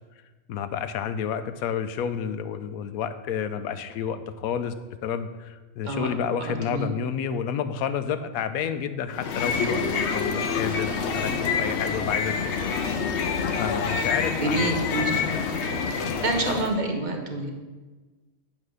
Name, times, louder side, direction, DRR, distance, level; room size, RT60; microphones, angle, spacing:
voice 1, 0.5-4.7 5.0-9.8 10.1-12.7 13.6-15.1, left 7 dB, 85° left, 11 dB, 1.1 m, -30 dB
voice 2, 6.4-6.9 14.4-15.1 15.9-17.5, right 2 dB, 35° right, 3 dB, 1.2 m, -28 dB
sound 1, 9.1-16.7, left 5 dB, 55° left, 1.0 m, -27 dB
10.0 x 4.1 x 6.4 m, 1.3 s
omnidirectional pair, 1.5 m